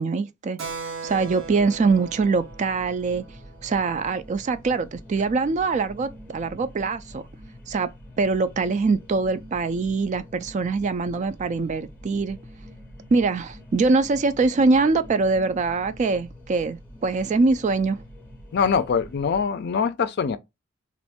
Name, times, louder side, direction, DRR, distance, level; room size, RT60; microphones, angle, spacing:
voice 1, 0.0-3.2 3.6-7.2 7.7-7.9 8.2-12.4 13.1-18.0, right 4 dB, 35° right, 0.3 m, -23 dB
Keyboard (musical), 0.6-4.7, right 5 dB, 90° right, 0.8 m, -39 dB
sound 1, 1.1-19.4, equal, 10° left, 0.7 m, -45 dB
voice 2, 18.5-20.4, left 6 dB, 55° left, 0.4 m, -23 dB
3.0 x 2.5 x 3.5 m
head